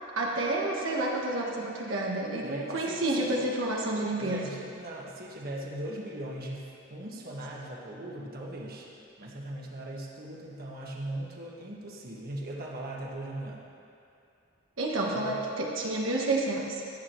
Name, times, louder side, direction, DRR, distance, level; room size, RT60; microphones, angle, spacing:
voice 1, 0.2-4.4 14.8-16.8, right 2 dB, 80° right, -3 dB, 1.3 m, -29 dB
voice 2, 2.4-3.4 4.2-8.9 9.2-13.6 15.1-15.4, right 1 dB, 50° right, -3 dB, 1.5 m, -39 dB
15.5 x 11.0 x 3.1 m, 2.6 s
head